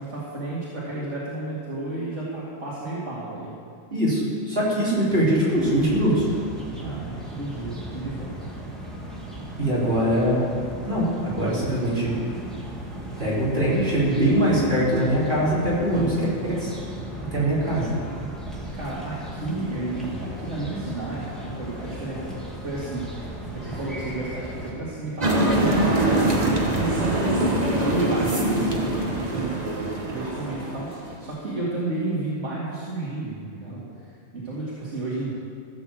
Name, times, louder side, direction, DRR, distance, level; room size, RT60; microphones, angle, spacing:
voice 1, 0.0-3.5 6.8-8.5 15.9-16.3 18.7-22.4 22.6-27.3 27.8-33.9 34.3-35.3, right 2 dB, 85° right, -8 dB, 2.5 m, -32 dB
voice 2, 3.9-6.3 9.6-10.4 10.8-12.2 13.2-16.1 16.4-16.7 17.2-17.9, right 1 dB, 55° right, -9 dB, 4.5 m, -22 dB
sound 1, 5.5-24.7, right 1 dB, ahead, 2.0 m, -36 dB
sound 2, 25.2-31.2, right 1 dB, 35° right, 1.4 m, -23 dB
16.0 x 6.4 x 7.5 m, 2.3 s
omnidirectional pair, 1.2 m